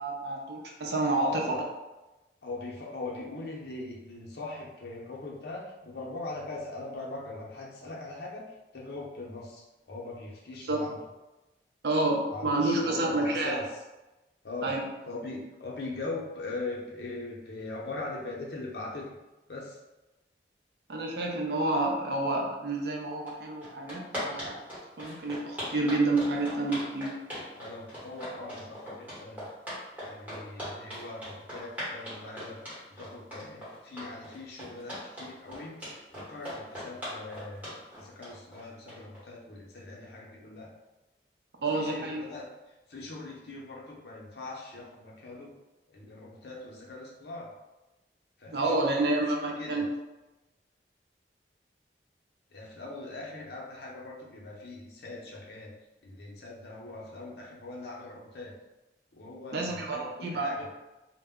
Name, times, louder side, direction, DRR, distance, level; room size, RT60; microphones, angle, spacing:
voice 1, 0.0-1.4 10.6-10.8 11.8-13.6 14.6-14.8 20.9-24.6 25.0-27.1 41.6-42.2 48.5-49.9 59.5-60.7, right 2 dB, 70° right, 0 dB, 0.5 m, -29 dB
voice 2, 1.1-1.6 2.4-11.0 12.3-13.8 14.4-14.7 15.0-19.1 19.5-19.8 27.5-29.4 29.9-40.7 41.7-42.5 42.9-45.5 45.9-47.6 48.4-49.8 52.5-55.7 56.0-58.5 59.1-60.6, left 2 dB, 70° left, -3 dB, 0.6 m, -41 dB
sound 1, 23.3-23.4 23.6-39.2, equal, 10° right, 1.0 m, -39 dB
2.1 x 2.1 x 3.5 m, 1.0 s
head